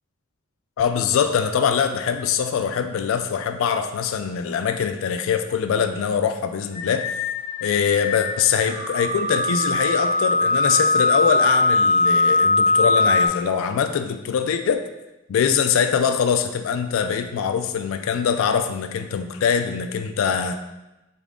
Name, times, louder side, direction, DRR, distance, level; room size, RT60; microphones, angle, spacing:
voice 1, 0.8-7.1 7.6-14.8 15.3-20.6, left 7 dB, 65° left, 7 dB, 0.3 m, -23 dB
sound 1, 6.7-13.3, left 2 dB, 20° right, 1.1 m, -21 dB
4.1 x 3.5 x 3.6 m, 0.99 s
head